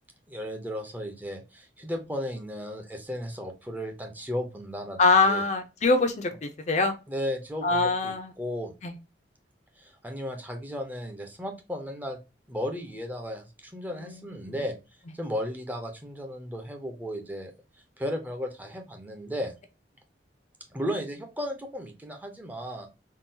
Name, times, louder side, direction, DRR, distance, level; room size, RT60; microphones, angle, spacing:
voice 1, 0.3-5.4 7.1-8.7 9.8-12.2 12.5-14.8 15.1-17.5 18.0-19.5 20.7-22.9, equal, 10° right, 3 dB, 0.6 m, -35 dB
voice 2, 5.0-6.9 7.6-8.3 8.8-8.9 14.0-14.2, left 3 dB, 40° left, 6 dB, 0.5 m, -23 dB
3.7 x 2.2 x 2.6 m, 0.28 s
head